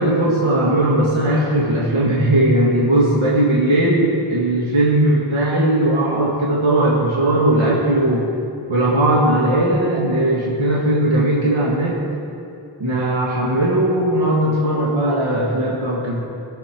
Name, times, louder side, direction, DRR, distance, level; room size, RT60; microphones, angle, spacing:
voice 1, 0.0-8.3 8.7-12.0 12.8-16.2, right 1 dB, 85° right, -5 dB, 1.9 m, -18 dB
20.5 x 7.1 x 4.5 m, 2.7 s
wide cardioid pair, 95°, 47 cm